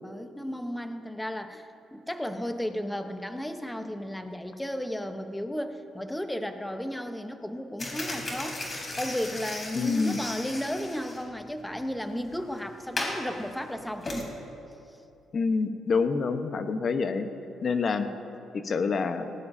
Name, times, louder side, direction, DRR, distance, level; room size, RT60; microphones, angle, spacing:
voice 1, 0.0-14.3 14.9-15.0, equal, 5° left, 7 dB, 1.0 m, -34 dB
sound 1, 7.8-14.2, left 2 dB, 30° left, 3.5 m, -36 dB
voice 2, 9.7-10.2 15.3-17.3 17.6-18.1 18.6-19.3, left 4 dB, 50° left, 8 dB, 1.0 m, -27 dB
18.5 x 18.0 x 2.8 m, 2.7 s
cardioid pair, 90°, 0 cm